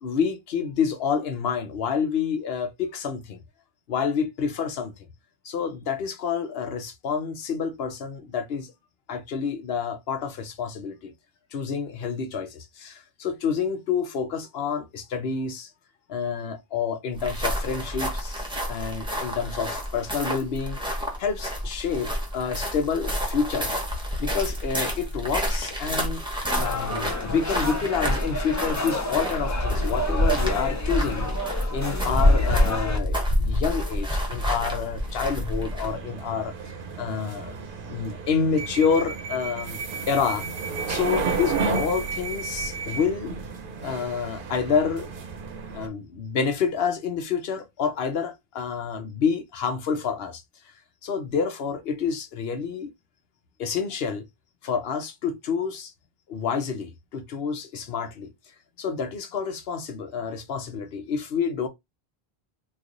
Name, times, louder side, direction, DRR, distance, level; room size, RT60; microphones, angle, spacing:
voice 1, 0.0-3.4 3.9-4.9 5.4-8.7 9.1-11.1 11.5-15.7 16.1-18.4 18.7-20.8 21.2-23.7 24.2-26.2 26.6-31.3 31.7-36.5 37.0-37.6 37.9-39.8 40.1-40.5 40.9-43.3 43.8-45.1 45.7-50.4 51.0-52.9 53.6-54.2 54.6-55.9 56.3-58.3 58.8-61.7, left 6 dB, 75° left, 0.9 m, -28 dB
sound 1, 17.1-36.0, equal, 5° right, 0.9 m, -27 dB
sound 2, 26.4-33.0, left 1 dB, 20° left, 0.5 m, -31 dB
sound 3, 33.9-45.9, right 5 dB, 60° right, 0.8 m, -33 dB
3.1 x 2.4 x 3.8 m
omnidirectional pair, 1.0 m